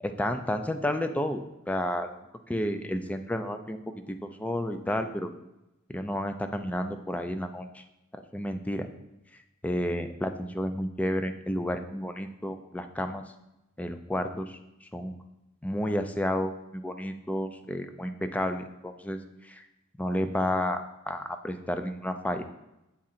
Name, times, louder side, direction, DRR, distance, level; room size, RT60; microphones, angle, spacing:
voice 1, 0.0-1.4 1.7-3.8 4.1-5.3 5.9-7.8 8.1-8.9 9.6-13.2 13.8-14.6 14.9-15.1 15.6-19.2 19.4-19.6 20.0-22.4, left 1 dB, 5° left, 7 dB, 0.3 m, -31 dB
7.0 x 3.8 x 4.2 m, 0.91 s
head